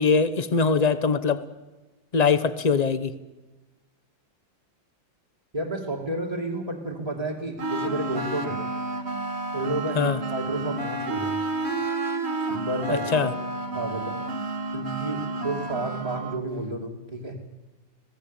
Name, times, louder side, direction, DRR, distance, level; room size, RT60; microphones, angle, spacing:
voice 1, 0.0-1.4 2.1-3.1 10.0-10.2 13.1-13.3, left 5 dB, 30° left, 13 dB, 0.8 m, -22 dB
voice 2, 5.5-8.6 9.5-11.3 12.5-13.3 13.7-14.2 14.7-17.4, right 2 dB, 20° right, -2 dB, 2.9 m, -31 dB
sound 1, 7.6-16.4, right 2 dB, 35° right, 2.0 m, -30 dB
26.0 x 18.0 x 8.5 m, 1.2 s
omnidirectional pair, 2.1 m